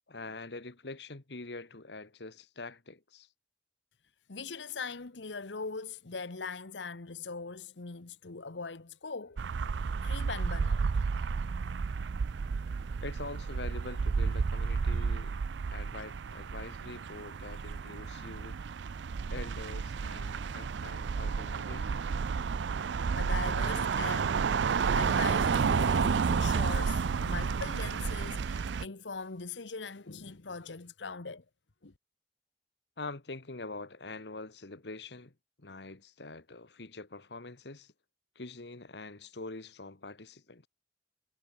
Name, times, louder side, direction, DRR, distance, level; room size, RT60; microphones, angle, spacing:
voice 1, 0.1-3.3 13.0-15.4 15.7-18.6 19.3-22.1 33.0-35.3 35.6-37.9 38.3-40.7, left 3 dB, 70° left, 1.5 m, -44 dB
voice 2, 4.3-9.4 10.0-10.9 23.1-24.3 24.9-31.4 31.8-31.9, left 4 dB, 85° left, 1.2 m, -41 dB
sound 1, 9.4-28.9, right 5 dB, 80° right, 0.4 m, -31 dB
head